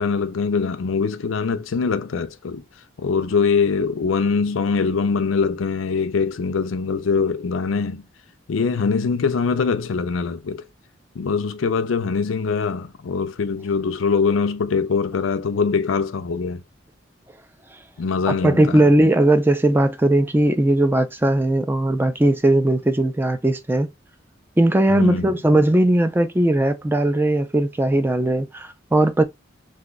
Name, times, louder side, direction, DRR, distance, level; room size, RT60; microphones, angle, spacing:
voice 1, 0.0-2.6 3.0-8.0 8.5-10.6 11.2-16.6 18.0-18.8 24.9-25.4, left 5 dB, 90° left, 0.5 m, -23 dB
voice 2, 18.3-23.9 24.6-29.2, right 1 dB, 10° right, 0.3 m, -18 dB
2.6 x 2.2 x 3.8 m
head